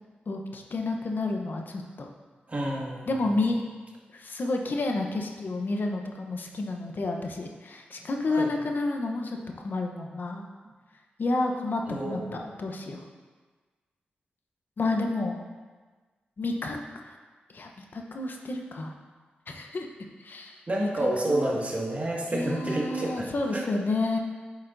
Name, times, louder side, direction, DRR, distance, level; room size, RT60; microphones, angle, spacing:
voice 1, 0.3-2.1 3.1-3.6 4.1-9.4 9.6-10.5 11.2-13.0 14.8-15.4 16.4-16.8 17.0-17.1 17.5-18.9 19.5-19.9 20.2-20.6 21.0-21.6 22.3-24.2, left 2 dB, 60° left, 2 dB, 0.9 m, -30 dB
voice 2, 2.5-3.1 8.3-8.5 11.9-12.4 20.7-23.6, right 1 dB, 40° right, -2 dB, 1.9 m, -29 dB
8.9 x 7.2 x 2.7 m, 1.4 s
cardioid pair, 50°, 4 cm